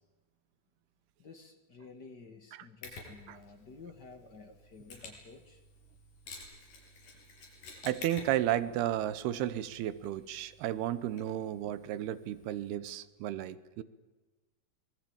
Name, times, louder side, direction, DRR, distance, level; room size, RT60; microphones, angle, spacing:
voice 1, 1.2-5.6, left 4 dB, 45° left, 8 dB, 1.4 m, -52 dB
Mechanisms, 2.8-12.7, left 3 dB, 80° left, 8.1 m, -52 dB
voice 2, 7.8-13.8, right 12 dB, 75° right, 15 dB, 2.9 m, -33 dB
26.0 x 21.5 x 8.8 m, 1.2 s
omnidirectional pair, 4.7 m